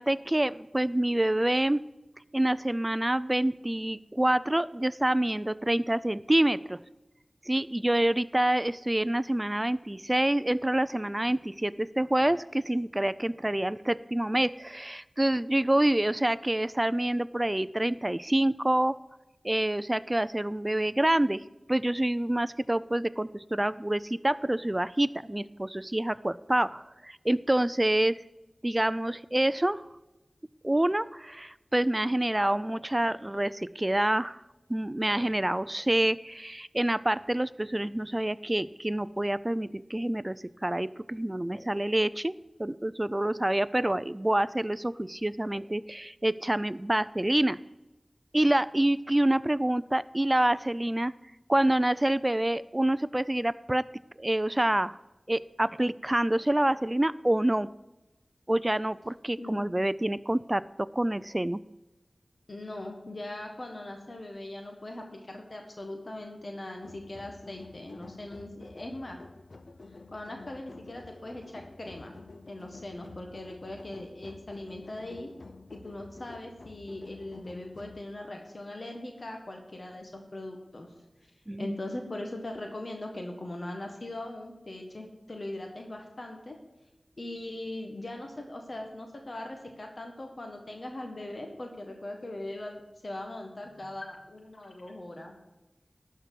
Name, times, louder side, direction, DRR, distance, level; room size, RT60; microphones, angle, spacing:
voice 1, 0.0-1.8 2.3-6.8 7.5-19.0 19.4-21.4 21.7-28.2 28.6-29.8 30.6-34.4 34.7-47.6 48.3-51.1 51.5-53.8 54.2-55.0 55.3-57.7 58.5-61.6 81.5-81.8, right 1 dB, 25° right, 16 dB, 0.4 m, -27 dB
voice 2, 62.5-69.2 70.1-72.1 72.5-75.3 75.7-80.9 81.6-86.6 87.2-95.3, left 1 dB, 60° left, 2 dB, 1.5 m, -40 dB
sound 1, 66.8-78.0, left 3 dB, 80° left, 0.5 m, -49 dB
11.5 x 4.6 x 7.7 m, 1.0 s
wide cardioid pair, 40°, 0 cm